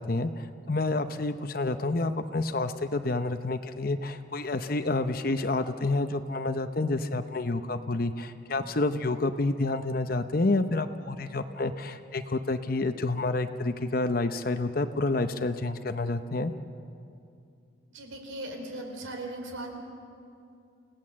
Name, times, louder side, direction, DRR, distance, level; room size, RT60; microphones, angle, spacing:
voice 1, 0.0-16.5, left 2 dB, 45° left, 9 dB, 0.7 m, -29 dB
voice 2, 17.9-19.7, right 1 dB, 85° right, 3 dB, 4.3 m, -38 dB
29.0 x 17.5 x 7.6 m, 2.5 s
head